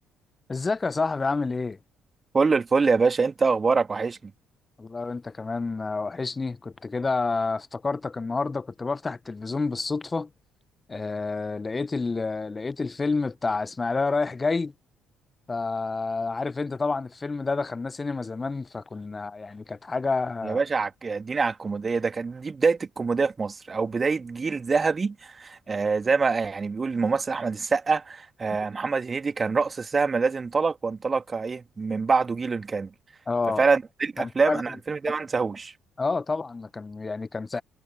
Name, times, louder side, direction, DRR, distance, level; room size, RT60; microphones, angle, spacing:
voice 1, 0.5-1.8 4.8-10.3 10.9-14.7 15.5-20.6 33.3-33.6 34.2-34.6 36.0-37.6, left 3 dB, 25° left, 1.4 m, -29 dB
voice 2, 2.3-4.3 20.4-32.9 33.6-35.7, right 4 dB, 30° right, 2.6 m, -25 dB
figure-of-eight pair, 50°, 0 cm